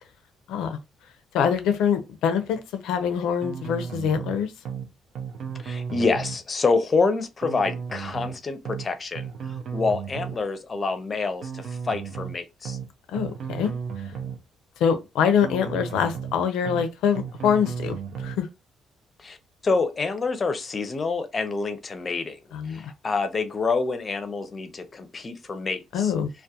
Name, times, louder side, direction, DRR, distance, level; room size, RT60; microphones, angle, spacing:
voice 1, 1.3-4.5 13.1-13.7 14.8-18.5 22.5-22.8 25.9-26.3, left 7 dB, 90° left, 0.4 m, -24 dB
sound 1, 3.4-4.3 4.6-4.9 5.1-6.4 7.4-8.3 8.6-8.9 9.1-10.4 11.4-12.3 12.6-12.9 13.1-14.4 15.4-16.3 16.6-16.9 17.1-18.4, right 6 dB, 70° right, 0.5 m, -34 dB
voice 2, 5.6-9.3 9.7-12.8 19.2-19.4 19.6-22.4 22.7-26.1, left 4 dB, 35° left, 0.5 m, -27 dB
2.3 x 2.1 x 2.7 m
cardioid pair, 90°, 0 cm